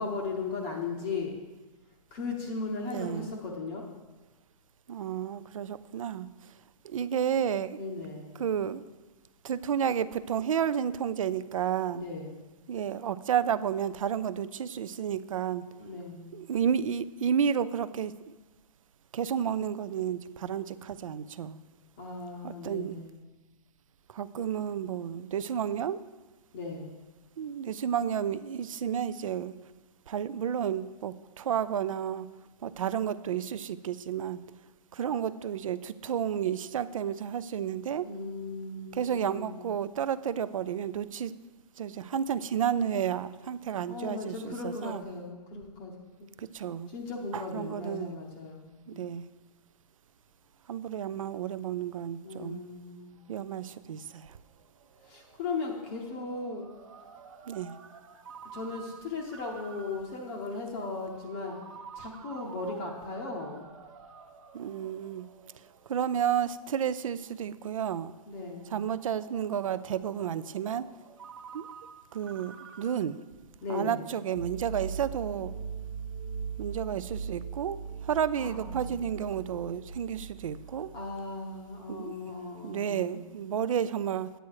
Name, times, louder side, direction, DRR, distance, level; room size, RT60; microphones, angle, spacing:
voice 1, 0.0-1.4 2.1-3.8 7.7-8.4 11.9-12.4 15.8-16.4 22.0-23.2 26.5-26.9 38.0-39.7 43.9-45.9 46.2-46.3 46.9-49.0 52.2-53.2 55.0-56.7 58.5-61.6 61.9-63.7 68.3-68.8 73.6-74.0 78.4-79.0 80.9-83.4, left 3 dB, 15° left, 0 dB, 0.8 m, -37 dB
voice 2, 2.9-3.3 4.9-6.3 6.8-7.8 8.4-8.8 9.4-12.0 12.7-15.6 16.3-18.4 19.1-21.6 22.4-23.0 24.1-26.0 27.4-29.6 30.1-32.3 32.6-34.4 34.9-38.1 38.9-41.3 41.8-45.1 46.4-46.9 47.3-48.1 48.9-49.3 50.7-52.6 53.3-54.4 57.5-57.7 64.5-65.3 65.9-68.1 68.7-70.9 71.5-71.7 72.1-73.2 73.7-75.5 76.6-80.9 81.9-82.1 82.6-84.3, right 8 dB, 60° right, 16 dB, 0.5 m, -31 dB
Ringtone, 53.2-73.0, right 6 dB, 40° right, 1.0 m, -51 dB
sound 1, 74.3-81.7, right 6 dB, 85° right, 1.0 m, -40 dB
9.6 x 9.0 x 4.7 m, 1.2 s
hypercardioid pair, 175°, 20 cm